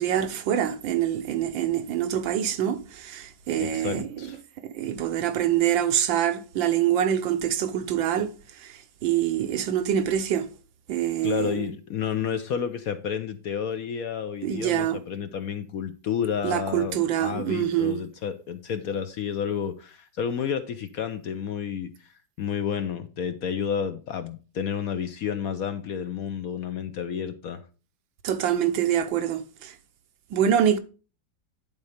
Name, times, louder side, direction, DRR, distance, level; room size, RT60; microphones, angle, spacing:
voice 1, 0.0-4.3 4.6-8.3 8.6-8.7 9.0-10.5 10.9-11.7 14.4-15.0 16.4-18.0 28.2-29.7 30.3-30.8, right 10 dB, 85° right, 1.6 m, -25 dB
voice 2, 3.6-4.4 11.2-22.1 22.4-27.6, left 8 dB, 65° left, 0.9 m, -31 dB
10.5 x 4.3 x 5.0 m
omnidirectional pair, 2.0 m